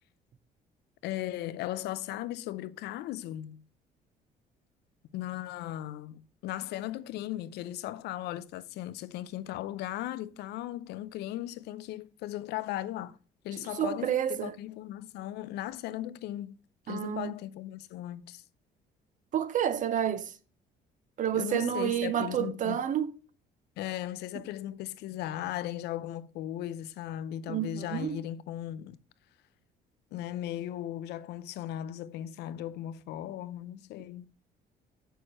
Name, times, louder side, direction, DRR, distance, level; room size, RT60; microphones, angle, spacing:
voice 1, 1.0-3.6 5.1-13.2 13.4-16.6 16.9-18.4 21.3-22.8 23.8-29.0 30.1-34.3, left 13 dB, 80° left, 0.5 m, -37 dB
voice 2, 13.6-14.5 16.9-17.3 19.3-20.3 21.2-23.1 27.5-28.2, right 10 dB, 50° right, 0.7 m, -30 dB
6.4 x 6.3 x 3.0 m
cardioid pair, 110°, 17 cm